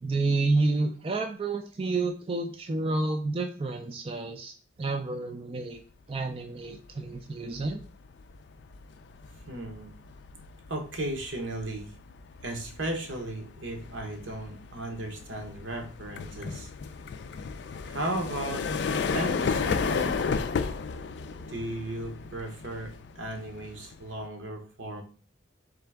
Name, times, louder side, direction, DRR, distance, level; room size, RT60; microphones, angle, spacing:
voice 1, 0.0-4.5 4.8-5.8 6.1-7.8, right 3 dB, 30° right, 4 dB, 0.3 m, -29 dB
sound 1, 6.8-7.1 7.5-24.3, left 5 dB, 60° left, 0.3 m, -34 dB
voice 2, 9.5-9.9 10.7-11.9 12.4-16.7 17.9-18.7 19.1-20.2 21.5-25.0, right 1 dB, 80° right, 3 dB, 1.0 m, -35 dB
3.8 x 3.4 x 3.4 m, 0.39 s
head